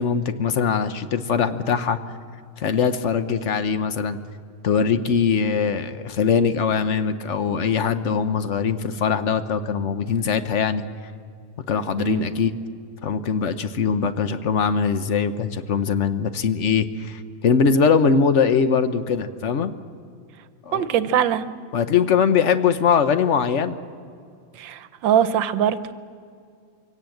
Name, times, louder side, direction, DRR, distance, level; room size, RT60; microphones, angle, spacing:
voice 1, 0.0-2.0 2.6-4.2 4.6-10.8 11.7-12.5 13.0-19.7 20.7-20.9 21.7-23.8, left 6 dB, 55° left, 11 dB, 0.8 m, -21 dB
voice 2, 20.7-21.4 24.6-25.9, right 9 dB, 75° right, 13 dB, 1.6 m, -22 dB
24.5 x 17.5 x 7.8 m, 2.3 s
omnidirectional pair, 2.1 m